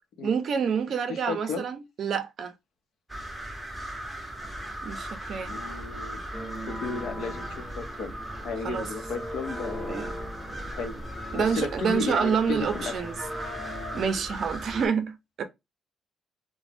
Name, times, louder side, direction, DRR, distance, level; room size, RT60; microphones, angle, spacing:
voice 1, 0.2-2.5 4.8-5.5 8.6-8.9 9.9-10.1 11.3-13.1 13.9-15.4, right 6 dB, 60° right, 0.5 m, -28 dB
voice 2, 1.1-1.6 5.5-6.2 6.6-8.1 8.4-10.0 10.7-11.0 11.3-13.0, left 4 dB, 75° left, 0.6 m, -34 dB
sound 1, 3.1-14.9, right 1 dB, 5° right, 0.7 m, -38 dB
sound 2, 6.3-14.1, left 1 dB, 25° left, 0.8 m, -40 dB
2.4 x 2.1 x 3.2 m
cardioid pair, 90°, 0 cm